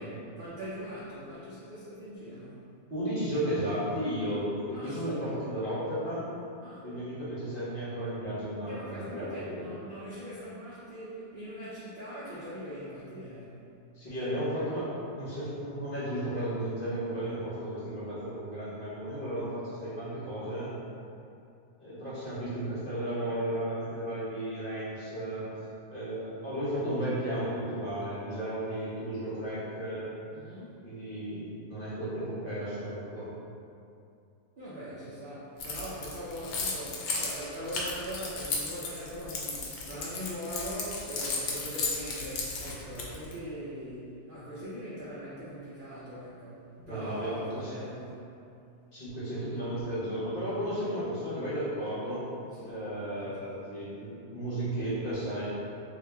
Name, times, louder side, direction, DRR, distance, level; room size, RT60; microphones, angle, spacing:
voice 1, 0.0-2.6 4.7-5.5 6.6-6.9 8.7-13.6 30.3-30.8 34.5-48.4 52.5-53.4, equal, 55° right, -10 dB, 0.6 m, -41 dB
voice 2, 2.9-6.2 6.8-9.7 13.9-14.8 15.1-20.7 21.8-25.5 25.9-30.1 30.8-33.3 46.8-47.3 47.6-47.7 48.9-52.2 52.6-55.4, right 1 dB, 40° left, -11 dB, 1.1 m, -34 dB
Keys jangling, 35.6-43.3, left 4 dB, 80° left, 1.1 m, -34 dB
2.9 x 2.9 x 3.3 m, 2.6 s
omnidirectional pair, 1.6 m